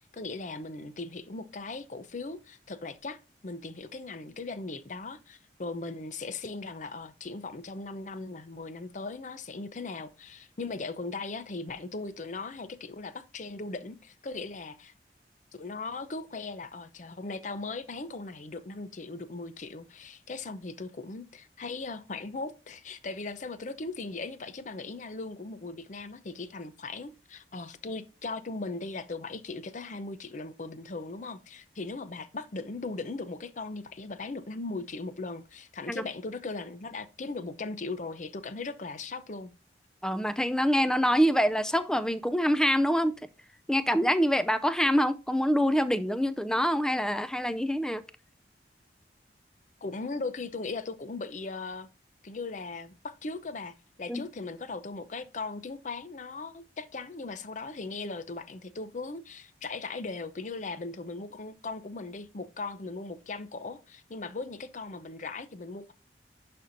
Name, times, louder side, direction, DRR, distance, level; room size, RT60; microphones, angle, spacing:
voice 1, 0.1-3.2 3.4-14.9 15.5-39.5 49.8-51.9 52.2-65.9, left 3 dB, 45° left, 0.6 m, -38 dB
voice 2, 40.0-43.3 43.7-48.0 54.1-54.3, equal, 5° left, 0.4 m, -25 dB
11.5 x 4.4 x 2.6 m
head